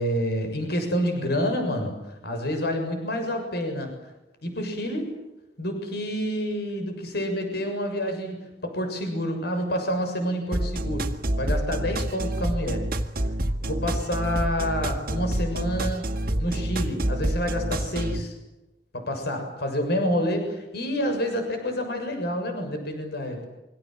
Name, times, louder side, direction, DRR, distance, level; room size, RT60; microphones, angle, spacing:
voice 1, 0.0-2.0 2.2-3.9 4.4-5.1 5.6-8.4 8.6-11.1 11.4-12.9 13.6-18.3 18.9-23.5, equal, 65° left, 5 dB, 6.9 m, -28 dB
sound 1, 10.5-18.2, right 1 dB, 55° right, 2.0 m, -27 dB
27.0 x 25.0 x 7.8 m, 1.0 s
head